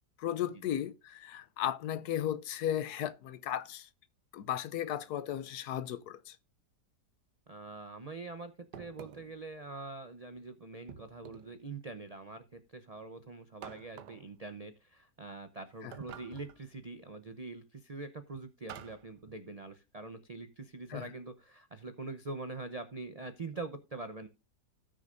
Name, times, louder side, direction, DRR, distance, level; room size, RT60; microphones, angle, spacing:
voice 1, 0.2-3.9 4.3-6.4 15.8-15.9 20.9-21.1, left 11 dB, 70° left, 1.1 m, -35 dB
voice 2, 7.5-24.3, right 3 dB, 35° right, 0.6 m, -44 dB
sound 1, 8.7-9.4 10.9-11.6 13.6-14.3 15.9-16.6 18.7-19.1, right 8 dB, 75° right, 1.4 m, -49 dB
17.0 x 6.5 x 2.5 m
omnidirectional pair, 1.8 m